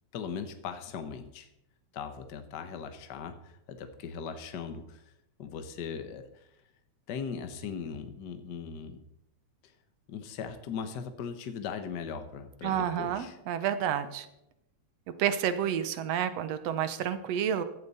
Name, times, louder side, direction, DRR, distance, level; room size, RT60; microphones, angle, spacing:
voice 1, 0.1-1.5 1.9-5.1 5.4-6.5 7.1-9.0 9.6-9.7 10.1-13.4, left 6 dB, 80° left, 8 dB, 0.9 m, -39 dB
voice 2, 12.6-14.3 15.2-17.6, right 9 dB, 70° right, 11 dB, 1.8 m, -30 dB
15.5 x 12.0 x 4.2 m, 0.83 s
omnidirectional pair, 3.4 m